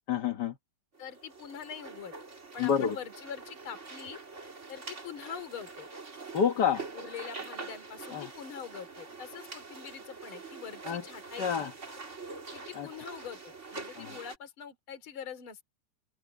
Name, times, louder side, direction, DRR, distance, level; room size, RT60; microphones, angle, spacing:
voice 1, 0.1-0.5 2.6-2.9 6.3-6.9 8.1-8.3 10.9-11.0 11.4-11.7 12.8-12.9 14.0-14.1, left 7 dB, 85° left, 0.9 m, -28 dB
sound 1, 0.9-14.4, right 4 dB, 25° right, 2.2 m, -45 dB
voice 2, 1.0-2.1 2.5-4.2 4.7-5.9 6.9-11.7 12.5-15.6, left 7 dB, 40° left, 3.5 m, -44 dB
omnidirectional pair, 3.8 m